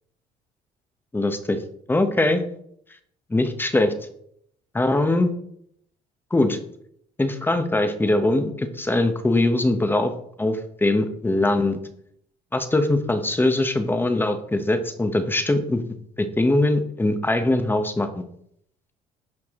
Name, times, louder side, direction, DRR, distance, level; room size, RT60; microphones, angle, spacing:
voice 1, 1.1-1.6 1.9-2.4 3.3-3.9 4.7-5.3 6.3-6.6 7.2-10.1 10.4-11.8 12.5-15.8 16.2-18.2, left 2 dB, 10° left, 8 dB, 0.9 m, -22 dB
10.5 x 4.7 x 3.7 m, 0.70 s
cardioid pair, 110°, 17 cm